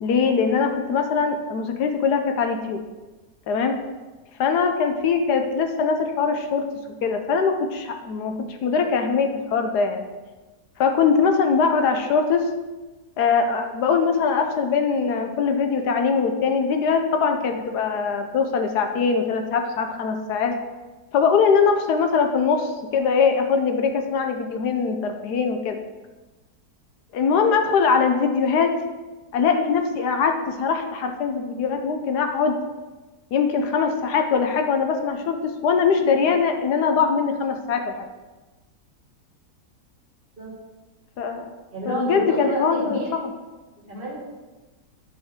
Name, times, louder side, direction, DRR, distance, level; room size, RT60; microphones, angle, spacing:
voice 1, 0.0-2.8 3.5-3.7 4.4-6.6 7.0-10.0 10.8-12.5 13.2-20.5 21.1-25.8 27.1-28.7 29.3-32.6 33.3-38.1 41.2-41.5 41.9-43.0, left 5 dB, 75° left, 5 dB, 1.3 m, -22 dB
voice 2, 41.7-43.1 43.9-44.2, right 1 dB, 35° right, -5 dB, 2.4 m, -29 dB
10.5 x 5.2 x 3.7 m, 1.2 s
omnidirectional pair, 1.8 m